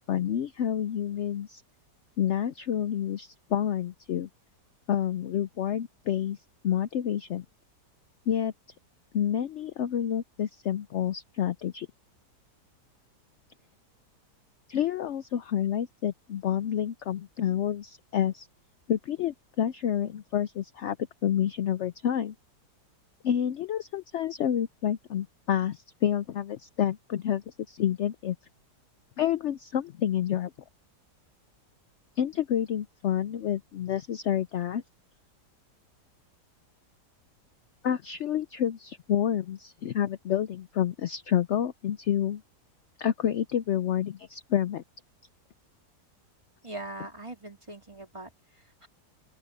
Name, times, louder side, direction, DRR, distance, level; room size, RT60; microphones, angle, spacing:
voice 1, 0.1-1.6 2.2-4.3 4.9-6.4 6.6-7.4 8.3-8.5 9.1-11.9 14.7-18.5 18.9-21.0 21.2-22.3 23.2-28.4 29.2-30.5 32.2-34.8 37.8-42.4 43.0-44.8, left 10 dB, 70° left, 0.6 m, -29 dB
voice 2, 46.6-48.9, right 2 dB, 15° right, 3.3 m, -42 dB
open air
omnidirectional pair, 1.8 m